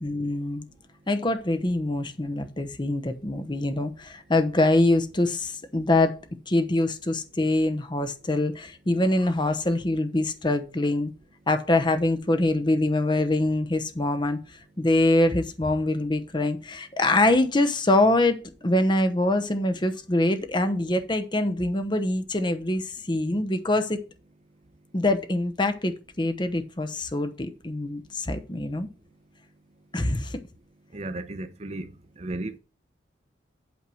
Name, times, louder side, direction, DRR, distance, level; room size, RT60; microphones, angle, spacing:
voice 1, 0.0-0.6 1.1-6.2 6.5-11.1 11.5-14.4 14.8-18.4 18.6-24.0 24.9-28.9 29.9-30.4, left 2 dB, 25° left, 0.9 m, -24 dB
voice 2, 30.9-32.6, right 2 dB, 35° right, 0.7 m, -35 dB
8.4 x 4.7 x 6.2 m
head